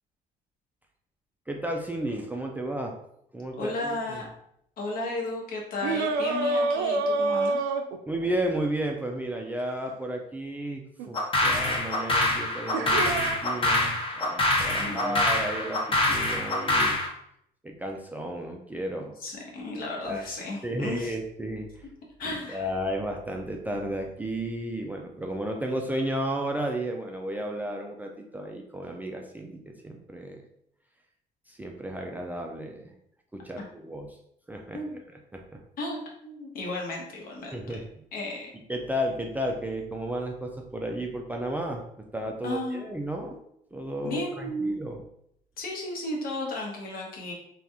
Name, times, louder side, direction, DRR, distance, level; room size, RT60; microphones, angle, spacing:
voice 1, 1.5-3.0 3.3-4.2 8.1-17.0 17.6-19.2 20.0-20.2 20.6-21.9 22.2-30.4 31.5-32.9 33.3-34.1 34.5-34.8 35.3-35.6 37.5-37.9 38.7-43.4 43.7-45.0, right 1 dB, 10° right, 1 dB, 0.3 m, -33 dB
voice 2, 3.5-4.3 4.8-7.7 14.7-15.2 19.2-21.1 22.2-22.7 34.7-35.0 35.8-37.8 38.1-38.5 42.4-42.8 44.0-44.8 45.6-47.3, left 2 dB, 60° left, -1 dB, 1.0 m, -34 dB
sound 1, 5.8-8.4 11.0-11.1 12.7-13.4, right 3 dB, 85° right, 0.4 m, -27 dB
sound 2, 11.1-17.1, left 2 dB, 30° left, 0.7 m, -25 dB
2.8 x 2.4 x 3.5 m, 0.73 s
cardioid pair, 110°, 17 cm